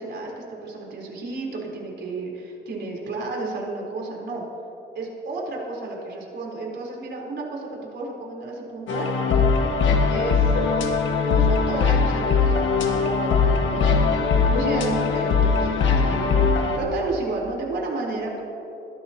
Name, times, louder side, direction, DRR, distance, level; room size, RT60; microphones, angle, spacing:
voice 1, 0.0-4.4 4.9-9.1 10.1-10.5 11.2-13.9 14.3-16.4 16.7-18.4, right 3 dB, 60° right, -2 dB, 3.8 m, -32 dB
sound 1, 8.9-16.8, left 5 dB, 75° left, 1.6 m, -20 dB
21.0 x 13.5 x 2.9 m, 2.8 s
cardioid pair, 90°, 20 cm